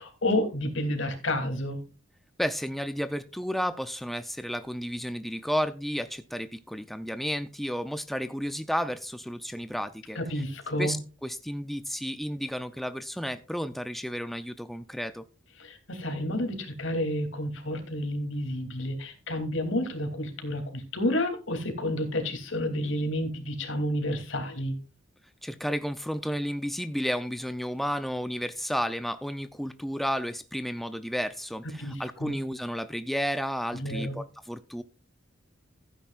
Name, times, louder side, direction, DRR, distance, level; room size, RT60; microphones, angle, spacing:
voice 1, 0.0-1.8 10.1-10.9 15.6-24.7 31.8-32.3 33.7-34.2, left 1 dB, 80° left, 2.9 m, -30 dB
voice 2, 2.4-10.2 10.8-11.0 11.2-15.3 25.4-34.8, equal, ahead, 0.4 m, -32 dB
15.5 x 9.1 x 2.4 m
head